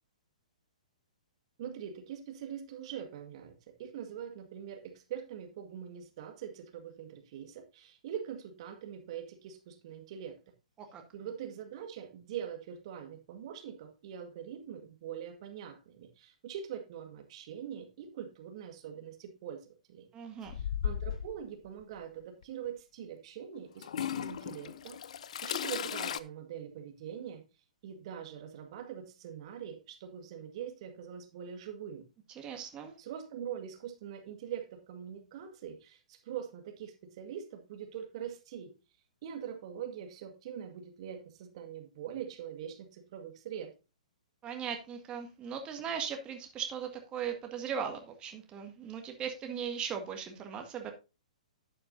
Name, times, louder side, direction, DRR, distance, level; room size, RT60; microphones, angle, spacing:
voice 1, 1.6-10.4 11.1-20.1 20.5-25.0 25.4-27.4 27.8-32.0 33.0-38.7 39.2-43.7, right 9 dB, 50° right, 6 dB, 1.7 m, -43 dB
voice 2, 20.1-20.6 32.3-32.9 44.4-50.9, right 7 dB, 25° right, 4 dB, 1.8 m, -38 dB
Toilet flush / Trickle dribble, 20.5-21.4 22.4-22.5 23.8-26.2, left 9 dB, 60° left, 0.6 m, -36 dB
11.5 x 8.6 x 2.6 m, 0.28 s
figure-of-eight pair, 120°, 4 cm